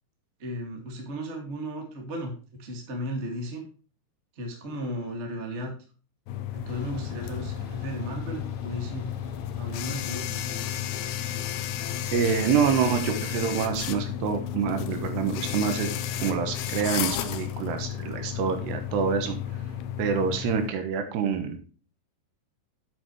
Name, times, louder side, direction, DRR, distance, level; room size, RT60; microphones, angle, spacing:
voice 1, 0.4-3.6 4.3-5.7 6.5-9.1 9.6-10.5, equal, 30° right, 2 dB, 1.2 m, -35 dB
sound 1, 6.3-20.7, left 10 dB, 75° left, 2.3 m, -33 dB
sound 2, 6.7-12.4, left 4 dB, 60° left, 1.6 m, -46 dB
voice 2, 12.1-15.9 16.2-19.4 20.0-21.6, right 7 dB, 75° right, 7 dB, 3.1 m, -26 dB
8.7 x 8.5 x 3.1 m, 0.37 s
omnidirectional pair, 5.2 m